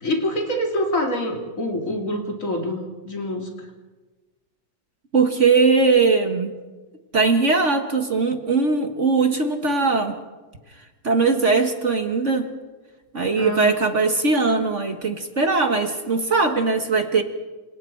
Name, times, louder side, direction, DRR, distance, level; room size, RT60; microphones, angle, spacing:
voice 1, 0.0-3.5 13.4-13.7, left 1 dB, 45° left, 2 dB, 3.0 m, -26 dB
voice 2, 5.1-6.5 7.1-10.1 11.0-12.5 13.1-17.2, right 4 dB, 45° right, 5 dB, 1.7 m, -20 dB
28.0 x 26.5 x 4.6 m, 1.3 s
omnidirectional pair, 1.9 m